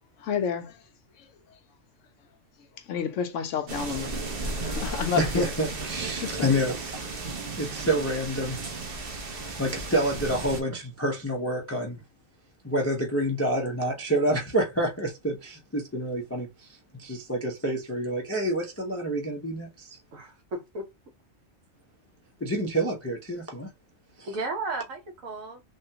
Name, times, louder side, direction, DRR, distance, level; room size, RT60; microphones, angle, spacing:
voice 1, 0.2-0.8 1.2-1.3 2.9-4.1 4.4-5.5 6.2-6.5, left 7 dB, 70° left, 0.9 m, -30 dB
sound 1, 3.7-10.6, right 3 dB, 50° right, 1.0 m, -34 dB
voice 2, 5.2-8.6 9.3-12.0 12.6-20.0 22.4-23.7 24.2-24.3, right 1 dB, 20° left, 0.3 m, -28 dB
voice 3, 20.1-20.9 24.2-25.6, right 3 dB, 75° right, 1.3 m, -34 dB
3.5 x 2.2 x 2.7 m
omnidirectional pair, 1.4 m